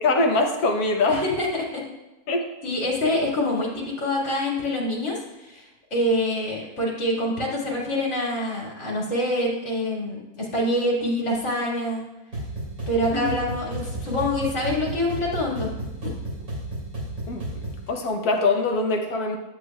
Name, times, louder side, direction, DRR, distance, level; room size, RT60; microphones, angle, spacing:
voice 1, 0.0-1.2 2.3-2.4 13.1-13.3 17.3-17.5 17.9-19.4, left 3 dB, 80° left, 4 dB, 1.5 m, -23 dB
voice 2, 1.0-1.8 2.6-12.0 12.9-15.7 16.0-16.1, left 1 dB, 50° left, -4 dB, 2.4 m, -26 dB
sound 1, 12.3-17.9, right 1 dB, 75° right, 3.2 m, -33 dB
9.8 x 8.1 x 2.3 m, 1.1 s
omnidirectional pair, 1.6 m